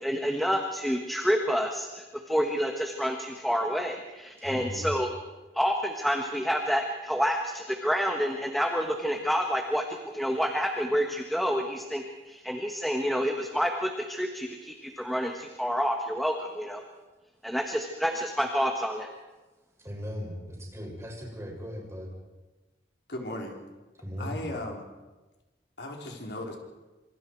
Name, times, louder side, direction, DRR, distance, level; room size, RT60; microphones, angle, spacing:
voice 1, 0.0-5.1 5.5-16.8 17.4-19.1, equal, ahead, 3 dB, 1.4 m, -28 dB
voice 2, 4.4-4.9 19.8-22.1 24.0-24.5, equal, 15° right, -2 dB, 6.5 m, -38 dB
voice 3, 23.1-23.6 24.2-24.9 25.8-26.6, left 1 dB, 70° left, 1 dB, 3.8 m, -36 dB
27.0 x 26.0 x 4.7 m, 1.2 s
head